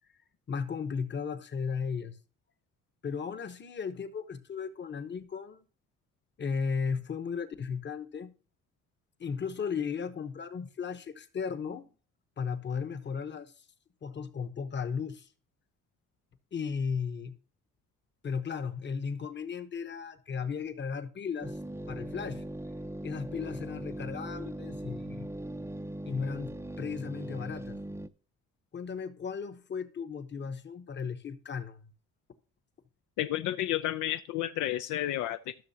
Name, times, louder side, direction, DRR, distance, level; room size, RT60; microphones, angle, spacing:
voice 1, 0.5-2.2 3.0-5.6 6.4-8.3 9.2-11.9 12.4-13.6 14.0-15.3 16.5-17.4 18.2-21.6 21.9-22.4 23.0-25.3 26.1-27.8 28.7-31.9, left 6 dB, 35° left, 1.0 m, -35 dB
Mains Hum, 21.4-28.1, right 1 dB, 10° right, 0.5 m, -40 dB
voice 2, 33.2-35.6, left 13 dB, 85° left, 0.5 m, -31 dB
13.5 x 6.3 x 2.8 m
cardioid pair, 90°, 30 cm